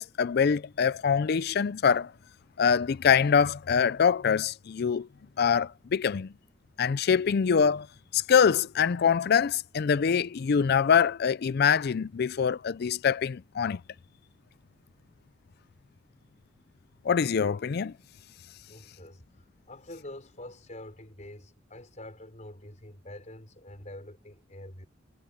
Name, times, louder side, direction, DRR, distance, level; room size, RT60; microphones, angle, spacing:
voice 1, 0.0-2.1 2.6-5.1 5.4-6.3 6.8-7.9 8.1-13.8 17.0-17.9, left 6 dB, 55° left, 0.4 m, -24 dB
voice 2, 18.7-24.9, left 1 dB, 40° left, 5.1 m, -46 dB
head